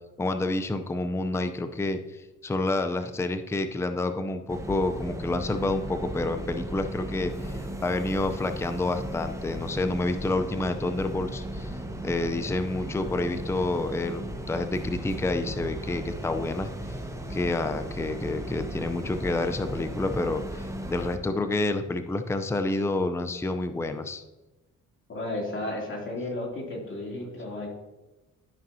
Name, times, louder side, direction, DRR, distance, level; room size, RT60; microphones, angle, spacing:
voice 1, 0.2-11.7 12.0-17.0 17.3-24.2, left 2 dB, 10° left, 8 dB, 0.5 m, -29 dB
sound 1, 4.5-21.2, right 1 dB, 10° right, 1.1 m, -36 dB
voice 2, 25.1-27.7, left 2 dB, 40° left, -1 dB, 2.8 m, -33 dB
12.5 x 5.2 x 2.7 m, 1.1 s
cardioid pair, 90°, 30 cm